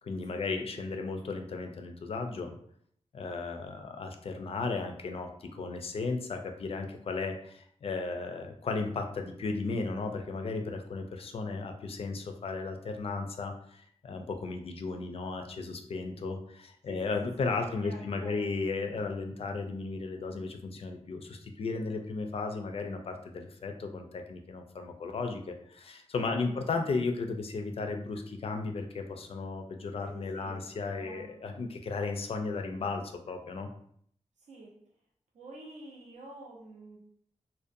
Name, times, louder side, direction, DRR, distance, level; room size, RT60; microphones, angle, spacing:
voice 1, 0.0-2.6 3.1-33.7, left 3 dB, 55° left, 5 dB, 0.4 m, -35 dB
voice 2, 16.8-18.5 26.3-26.7 30.0-30.6 31.0-31.3 34.4-34.8 35.3-37.0, right 2 dB, 85° right, -2 dB, 0.6 m, -49 dB
2.5 x 2.1 x 2.5 m, 0.64 s
wide cardioid pair, 125°, 12 cm